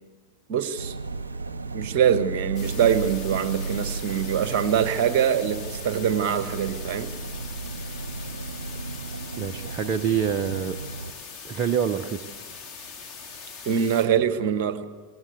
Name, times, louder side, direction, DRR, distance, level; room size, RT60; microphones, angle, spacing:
voice 1, 0.5-0.9 1.7-7.1 13.6-14.8, right 8 dB, 45° right, 11 dB, 1.4 m, -24 dB
sound 1, 0.8-11.1, right 3 dB, 75° right, 0.9 m, -34 dB
sound 2, 2.5-14.0, left 5 dB, 25° left, 3.5 m, -41 dB
voice 2, 9.4-10.8 11.4-12.3, right 7 dB, 30° right, 7 dB, 0.8 m, -26 dB
21.0 x 18.0 x 8.0 m, 1.5 s
figure-of-eight pair, 90°, 0 cm